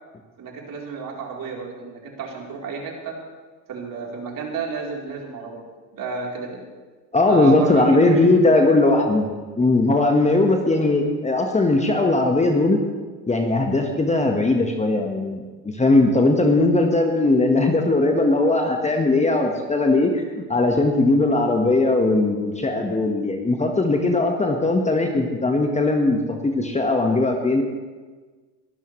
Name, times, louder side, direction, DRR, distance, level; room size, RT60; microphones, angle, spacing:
voice 1, 0.4-3.2 3.7-5.6 5.9-6.6 7.3-8.6, right 5 dB, 40° right, -1 dB, 3.8 m, -31 dB
voice 2, 7.1-9.3 9.6-12.8 13.3-27.6, left 2 dB, 15° left, 3 dB, 1.4 m, -19 dB
22.5 x 13.0 x 3.2 m, 1.4 s
hypercardioid pair, 80°, 49 cm